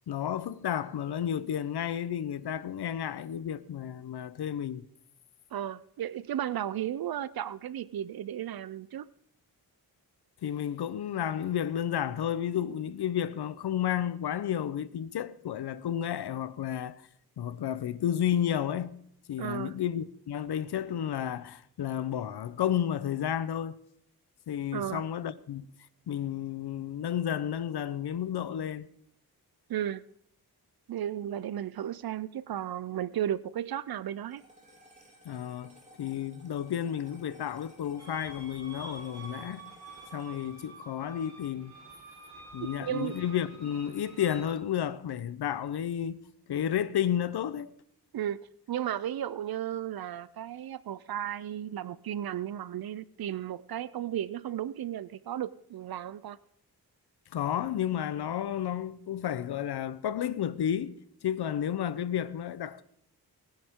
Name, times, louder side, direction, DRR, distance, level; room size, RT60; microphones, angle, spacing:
voice 1, 0.1-4.8 10.4-17.0 17.4-19.0 19.3-23.8 24.5-25.7 26.1-28.9 35.2-39.6 40.1-41.7 42.5-46.2 46.5-47.7 57.3-62.8, left 10 dB, 80° left, 0.9 m, -32 dB
voice 2, 5.5-9.1 19.4-19.7 24.7-25.0 29.7-30.0 30.9-34.4 42.8-43.2 48.1-56.4, right 11 dB, 65° right, 0.6 m, -34 dB
sound 1, 34.3-42.8, equal, 20° right, 3.9 m, -58 dB
sound 2, 38.0-44.5, right 2 dB, 40° right, 4.4 m, -48 dB
19.5 x 10.5 x 3.7 m
cardioid pair, 95°, 39 cm